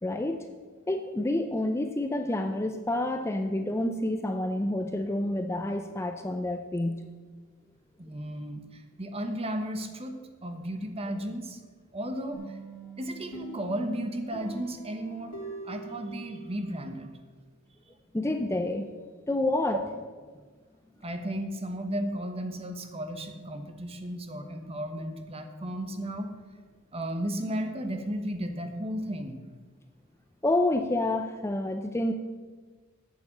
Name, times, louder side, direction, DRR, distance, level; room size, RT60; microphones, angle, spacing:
voice 1, 0.0-0.4 0.9-7.0 18.1-18.9 19.3-19.8 30.4-32.1, left 1 dB, 10° left, 6 dB, 0.4 m, -28 dB
voice 2, 8.0-8.6 9.0-10.1 10.4-11.6 11.9-12.4 13.0-15.4 15.7-17.1 21.0-26.3 26.9-29.4, right 1 dB, 30° right, 6 dB, 1.0 m, -34 dB
sound 1, 12.3-17.0, right 3 dB, 75° left, 2.7 m, -44 dB
8.5 x 7.6 x 7.2 m, 1.4 s
head